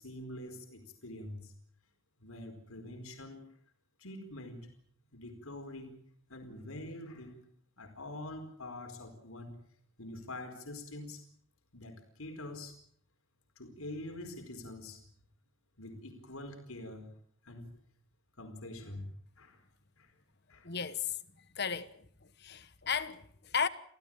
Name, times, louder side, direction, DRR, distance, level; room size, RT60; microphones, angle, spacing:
voice 1, 0.0-1.5 2.2-3.5 4.0-4.7 5.1-6.0 6.3-7.4 7.8-9.6 10.0-11.2 11.7-12.8 13.6-15.0 15.8-17.1 17.4-17.7 18.4-19.6 20.0-20.1 20.5-20.7, left 1 dB, 75° left, 4.6 m, -45 dB
voice 2, 20.6-21.2 21.5-23.7, left 6 dB, 50° left, 1.3 m, -35 dB
27.0 x 16.5 x 8.9 m
head